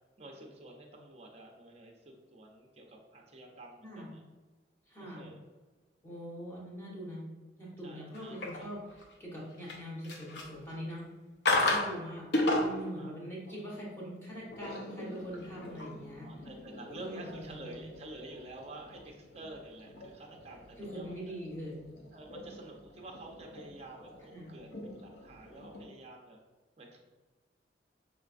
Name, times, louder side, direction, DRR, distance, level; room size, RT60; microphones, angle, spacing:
voice 1, 0.2-4.2 5.0-5.4 7.8-8.7 13.0-13.1 13.5-13.6 16.2-21.4 22.1-24.7 25.0-26.4 26.8-27.0, right 1 dB, 35° right, 1 dB, 0.7 m, -49 dB
voice 2, 4.9-5.3 6.0-7.2 7.6-11.0 11.4-12.3 12.5-16.3 17.0-17.8 20.8-21.9 24.3-24.5, equal, 15° left, -6 dB, 1.4 m, -43 dB
sound 1, 8.1-9.1 9.5-10.7 11.4-11.9 12.3-12.9 14.3-25.8, left 2 dB, 70° left, 0.7 m, -37 dB
6.0 x 3.3 x 2.5 m, 1.3 s
head